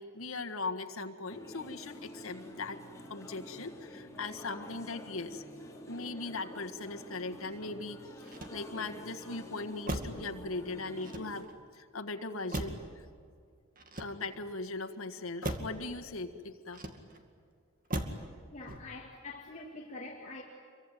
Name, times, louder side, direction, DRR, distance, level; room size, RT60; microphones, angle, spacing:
voice 1, 0.0-2.8 3.1-5.4 5.9-11.5 11.7-13.0 14.0-16.8, left 3 dB, 80° left, 5 dB, 1.6 m, -39 dB
sound 1, 1.3-11.4, equal, 15° left, 3.2 m, -48 dB
Motor vehicle (road), 8.2-9.0 9.8-10.3 11.0-11.7 12.5-13.0 13.8-14.5 15.4-15.8 16.7-17.3 17.9-18.3 18.6-19.1, right 1 dB, 40° right, 2.3 m, -38 dB
voice 2, 18.5-20.4, left 2 dB, 35° left, -2 dB, 2.4 m, -45 dB
27.5 x 23.5 x 9.2 m, 2.2 s
head